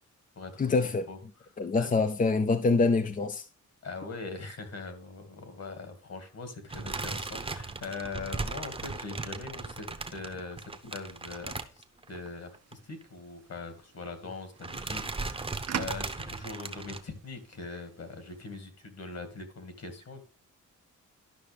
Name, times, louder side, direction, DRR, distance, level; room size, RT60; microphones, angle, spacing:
voice 1, 0.6-1.1 1.6-3.5, left 3 dB, 25° left, 0.5 m, -25 dB
voice 2, 3.8-9.9 10.1-20.2, left 3 dB, 55° left, 2.0 m, -41 dB
sound 1, 6.7-12.3 12.5-12.7 13.0-13.1 14.1-14.3 14.6-17.0, right 3 dB, 20° right, 0.9 m, -37 dB
sound 2, 12.1-18.6, right 8 dB, 55° right, 0.8 m, -44 dB
11.5 x 5.7 x 3.4 m
cardioid pair, 105°, 32 cm